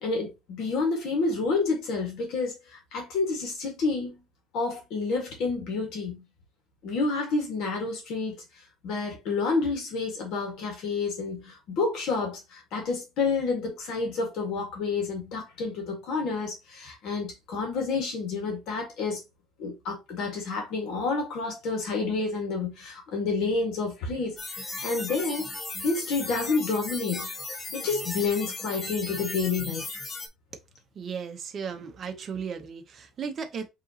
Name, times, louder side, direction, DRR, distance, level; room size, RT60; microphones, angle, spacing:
voice 1, 0.0-4.2 4.5-6.2 6.8-8.4 8.8-19.2 19.6-25.5 25.8-27.3 27.7-29.9, left 4 dB, 55° left, 1.6 m, -29 dB
sound 1, 24.4-30.3, left 3 dB, 15° left, 0.5 m, -36 dB
voice 2, 31.0-33.7, right 6 dB, 30° right, 0.7 m, -35 dB
5.1 x 2.9 x 2.8 m
cardioid pair, 175°, 0 cm